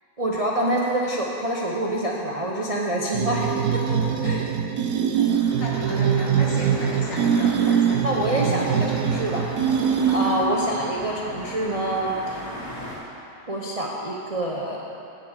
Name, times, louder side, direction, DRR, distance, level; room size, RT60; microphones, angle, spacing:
voice 1, 0.2-3.5 4.2-4.5 7.7-9.4 9.8-12.4 13.5-14.8, right 1 dB, 40° right, -3 dB, 0.5 m, -26 dB
sound 1, 3.1-10.6, right 8 dB, 65° right, 1.0 m, -23 dB
voice 2, 5.1-8.0 10.0-10.4, left 1 dB, 90° left, -4 dB, 2.4 m, -34 dB
sound 2, 5.3-13.0, equal, 65° left, 2.7 m, -38 dB
9.0 x 7.5 x 6.5 m, 2.7 s
omnidirectional pair, 1.9 m